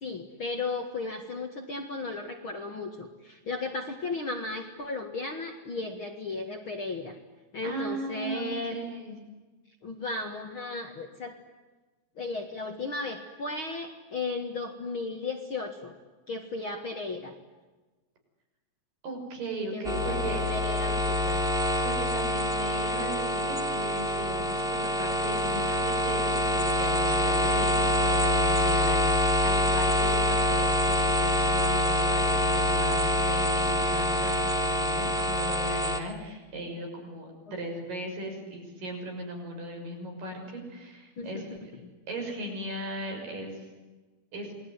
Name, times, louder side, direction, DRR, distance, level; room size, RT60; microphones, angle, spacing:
voice 1, 0.0-7.2 7.5-8.8 9.8-11.4 12.2-15.9 16.3-17.3 19.7-21.5 41.2-41.4, left 3 dB, 45° left, 4 dB, 2.0 m, -35 dB
voice 2, 7.6-9.2 19.0-20.5 21.8-41.6 42.1-43.6 44.3-44.5, right 1 dB, 60° right, 2 dB, 7.9 m, -37 dB
sound 1, 19.8-36.0, left 1 dB, ahead, 2.0 m, -26 dB
28.5 x 21.0 x 9.8 m, 1.2 s
omnidirectional pair, 4.3 m